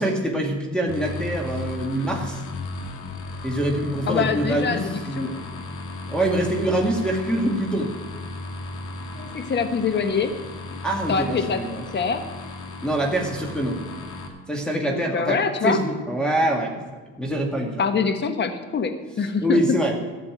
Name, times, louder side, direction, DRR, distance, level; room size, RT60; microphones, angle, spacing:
voice 1, 0.0-2.4 3.4-4.8 5.1-5.4 6.1-7.9 9.1-9.2 10.8-11.8 12.8-13.8 14.5-16.8 17.2-17.8 19.4-19.9, right 1 dB, 5° left, -3 dB, 2.1 m, -24 dB
sound 1, 0.9-14.3, left 2 dB, 65° left, 2.2 m, -35 dB
voice 2, 4.1-5.3 9.1-10.3 11.1-11.6 11.9-12.2 14.8-15.8 17.8-19.8, left 5 dB, 35° left, 8 dB, 1.2 m, -24 dB
13.0 x 6.9 x 9.0 m, 1.3 s
cardioid pair, 105°, 32 cm